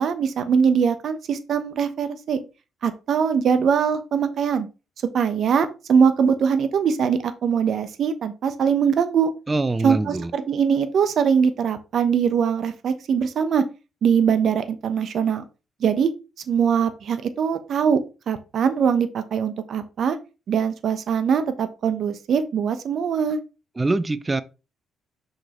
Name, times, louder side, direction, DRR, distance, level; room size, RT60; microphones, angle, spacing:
voice 1, 0.0-2.4 2.8-4.7 5.1-9.3 9.8-13.6 14.0-15.4 15.8-16.1 16.5-18.0 18.3-20.2 20.5-23.4, right 7 dB, 60° right, 0.8 m, -22 dB
voice 2, 9.5-10.3 23.8-24.4, right 2 dB, 20° right, 0.6 m, -23 dB
6.2 x 5.3 x 3.0 m
cardioid pair, 90°, 0 cm